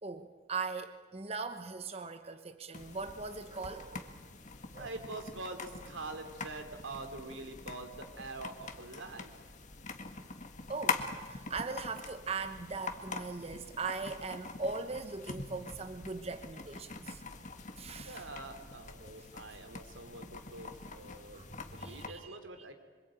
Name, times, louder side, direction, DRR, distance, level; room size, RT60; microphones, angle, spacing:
voice 1, 0.0-4.1 4.7-4.9 10.7-11.0 11.3-17.2 17.8-18.3 21.3-22.4, right 4 dB, 30° right, 8 dB, 1.0 m, -40 dB
sound 1, 2.7-22.1, left 4 dB, 40° left, 1.8 m, -44 dB
voice 2, 4.8-9.3 18.0-21.4 21.7-22.7, right 2 dB, 90° right, 6 dB, 3.2 m, -45 dB
26.5 x 24.0 x 9.1 m, 1.5 s
head